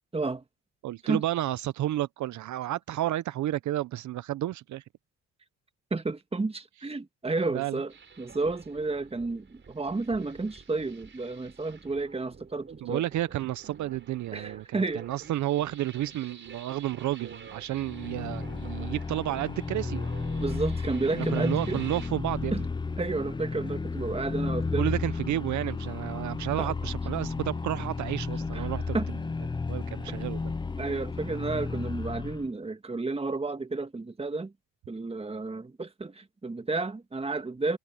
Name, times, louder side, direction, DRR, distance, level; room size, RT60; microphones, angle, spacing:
voice 1, 0.1-0.4 1.0-1.2 5.9-13.0 14.3-15.0 20.4-21.8 22.5-22.6 23.0-25.0 26.6-26.7 28.5-28.7 28.9-29.1 30.8-34.5 34.9-37.8, right 3 dB, 20° right, 1.9 m, -31 dB
voice 2, 0.8-4.8 7.5-7.8 12.8-20.0 21.2-22.5 24.8-29.2 29.7-30.4, right 14 dB, 70° right, 0.7 m, -31 dB
sound 1, 7.9-22.1, right 6 dB, 40° right, 4.3 m, -49 dB
sound 2, 17.7-32.5, left 4 dB, 15° left, 0.5 m, -33 dB
cardioid pair, 90°, 30 cm